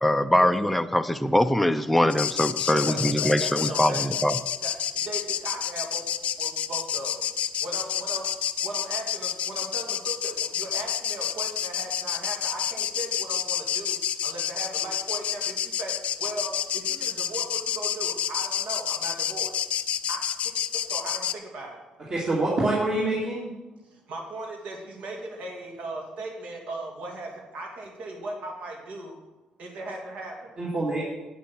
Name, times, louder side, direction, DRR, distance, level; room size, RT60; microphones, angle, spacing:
voice 1, 0.0-4.4, left 1 dB, 5° left, 8 dB, 0.5 m, -23 dB
sound 1, 2.1-21.3, left 9 dB, 60° left, 0.5 m, -29 dB
voice 2, 2.7-4.2 4.6-6.0 6.4-7.2 7.6-8.3 8.6-15.9 16.2-19.6 20.1-20.2 20.9-21.8 24.1-29.2 29.6-30.6, right 2 dB, 70° right, 1 dB, 2.6 m, -37 dB
voice 3, 22.1-23.5 30.6-31.0, right 2 dB, 40° right, -5 dB, 2.6 m, -26 dB
9.0 x 8.5 x 6.2 m, 1.1 s
cardioid pair, 125°, 2 cm